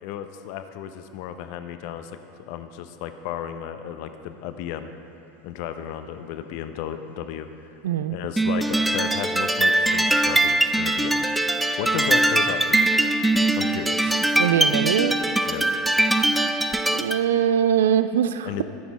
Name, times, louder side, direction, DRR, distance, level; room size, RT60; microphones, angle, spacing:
voice 1, 0.0-2.2 2.5-4.9 5.4-7.5 8.1-11.2 11.8-12.8 13.5-14.2 15.5-15.7 18.4-18.6, left 9 dB, 55° left, 9 dB, 0.6 m, -33 dB
voice 2, 7.8-8.2 14.4-15.2 16.9-18.5, right 9 dB, 70° right, 12 dB, 0.3 m, -22 dB
sound 1, 8.4-17.2, right 1 dB, 5° right, 0.4 m, -22 dB
14.0 x 6.0 x 4.2 m, 2.7 s
figure-of-eight pair, 85°, 0 cm